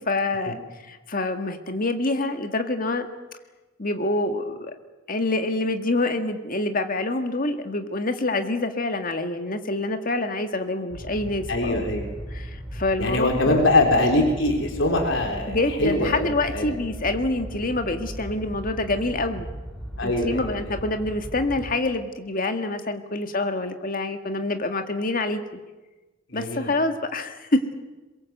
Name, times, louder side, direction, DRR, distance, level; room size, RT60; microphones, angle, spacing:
voice 1, 0.1-3.1 3.8-4.7 5.1-11.9 12.3-13.6 15.5-19.5 20.0-25.6 26.3-27.6, left 2 dB, 45° left, 7 dB, 1.9 m, -26 dB
sound 1, 10.9-21.8, right 1 dB, ahead, 3.8 m, -37 dB
voice 2, 11.5-12.1 13.0-16.7 20.0-20.8 26.3-26.7, left 2 dB, 70° left, 3 dB, 3.8 m, -23 dB
22.5 x 22.0 x 8.0 m, 1.2 s
head